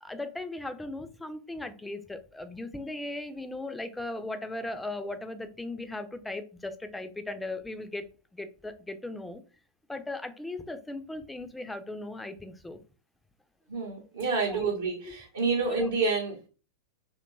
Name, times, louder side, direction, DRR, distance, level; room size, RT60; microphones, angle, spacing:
voice 1, 0.0-8.1 8.3-9.4 9.9-12.8 14.5-14.7 15.0-15.1 15.7-15.9, left 2 dB, 5° left, 8 dB, 0.3 m, -38 dB
voice 2, 13.7-16.4, right 4 dB, 65° right, -1 dB, 0.5 m, -28 dB
2.7 x 2.2 x 2.5 m, 0.34 s
figure-of-eight pair, 90°, 0 cm